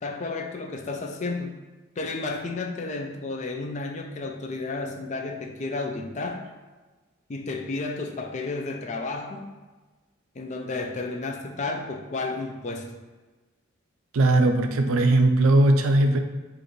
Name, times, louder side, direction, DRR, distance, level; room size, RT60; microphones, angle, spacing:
voice 1, 0.0-1.5 2.0-6.5 7.3-9.5 10.4-13.0, left 3 dB, 35° left, 4 dB, 0.4 m, -32 dB
voice 2, 14.1-16.2, right 2 dB, 80° right, 6 dB, 0.4 m, -19 dB
4.9 x 2.5 x 3.0 m, 1.3 s
head